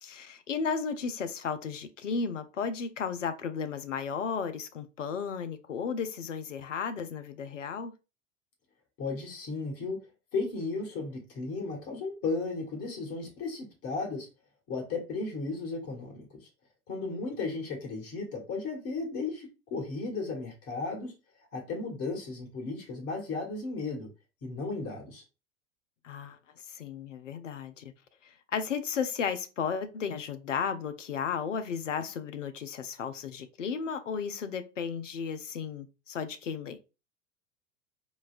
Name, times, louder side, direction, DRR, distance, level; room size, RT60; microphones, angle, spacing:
voice 1, 0.0-7.9 26.0-26.4 26.6-27.9 28.2-36.8, left 6 dB, 85° left, 0.5 m, -34 dB
voice 2, 9.0-10.0 10.3-14.3 14.7-16.5 16.9-21.1 21.5-24.1 24.4-25.2, left 3 dB, 40° left, 1.4 m, -35 dB
3.9 x 2.3 x 2.4 m
figure-of-eight pair, 85°, 36 cm